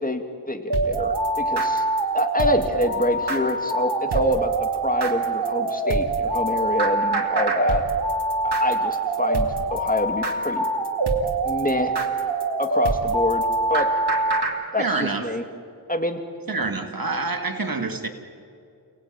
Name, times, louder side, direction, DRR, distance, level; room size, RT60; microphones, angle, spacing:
voice 1, 0.0-1.8 2.1-7.8 8.4-10.6 11.4-11.9 12.6-13.9 14.7-15.4 15.9-16.2, left 1 dB, 20° left, 5 dB, 2.7 m, -26 dB
sound 1, 0.7-14.5, right 2 dB, 85° right, 2.5 m, -24 dB
voice 2, 14.8-15.4 16.5-18.1, right 3 dB, 60° right, 6 dB, 2.2 m, -27 dB
29.5 x 19.5 x 9.3 m, 2.5 s
wide cardioid pair, 50°, 39 cm